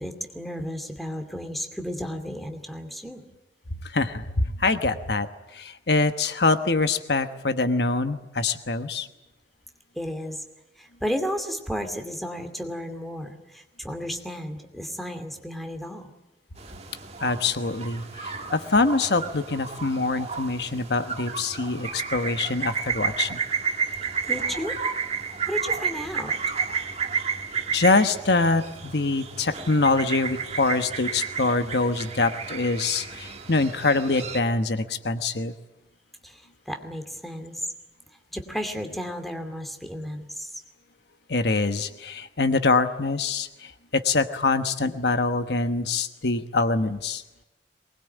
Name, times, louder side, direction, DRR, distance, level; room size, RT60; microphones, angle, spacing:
voice 1, 0.0-3.2 9.9-10.4 10.8-16.1 24.3-24.8 25.4-26.3 36.2-37.6 38.3-40.6, equal, ahead, 5 dB, 2.5 m, -33 dB
voice 2, 3.8-9.1 17.2-23.4 27.7-35.5 41.3-47.2, left 3 dB, 65° left, 9 dB, 1.2 m, -24 dB
sound 1, 16.6-34.4, right 6 dB, 35° right, 2.1 m, -32 dB
23.0 x 20.5 x 9.2 m, 0.96 s
head